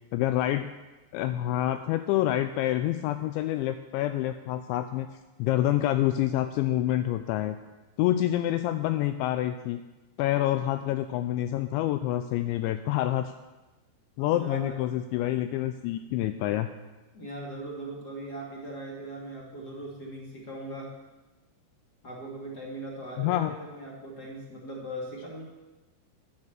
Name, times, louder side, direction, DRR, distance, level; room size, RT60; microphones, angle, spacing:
voice 1, 0.1-0.7 1.1-5.1 5.4-7.6 8.0-9.8 10.2-13.3 14.2-16.7 23.2-23.5, left 13 dB, 85° left, 9 dB, 2.7 m, -27 dB
voice 2, 11.5-11.8 14.2-14.8 17.1-20.9 22.0-25.4, right 1 dB, 30° left, -2 dB, 1.9 m, -39 dB
11.5 x 10.0 x 7.9 m, 1.1 s
omnidirectional pair, 5.6 m